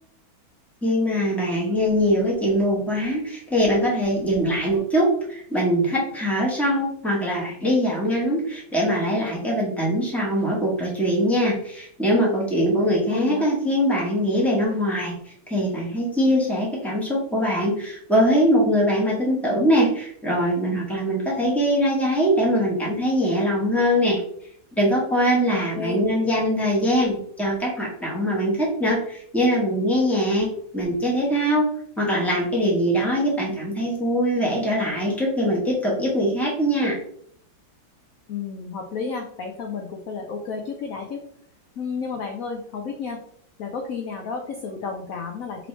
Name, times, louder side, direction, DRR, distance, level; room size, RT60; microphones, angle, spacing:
voice 1, 0.8-24.2 24.8-30.5 30.7-31.7 32.0-37.0, equal, ahead, -3 dB, 1.0 m, -22 dB
voice 2, 13.1-13.5 25.5-26.1 38.3-41.2 41.8-43.2 43.6-45.7, left 5 dB, 75° left, 2 dB, 0.8 m, -32 dB
5.1 x 3.1 x 3.2 m, 0.64 s
omnidirectional pair, 2.1 m